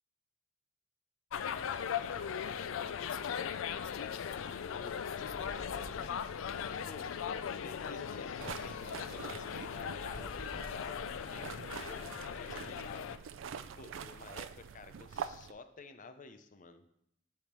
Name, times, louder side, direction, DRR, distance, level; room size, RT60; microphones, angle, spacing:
sound 1, 1.3-13.2, left 7 dB, 85° left, 0.4 m, -39 dB
voice 1, 1.4-2.4 2.8-6.1 6.7-7.1 7.6-13.1 13.8-16.8, left 3 dB, 40° left, 9 dB, 0.6 m, -52 dB
sound 2, 4.6-12.8, equal, 5° right, 0.8 m, -55 dB
santorini waves port, 8.4-15.5, right 7 dB, 75° right, 0.4 m, -45 dB
8.3 x 3.5 x 5.9 m, 0.75 s
head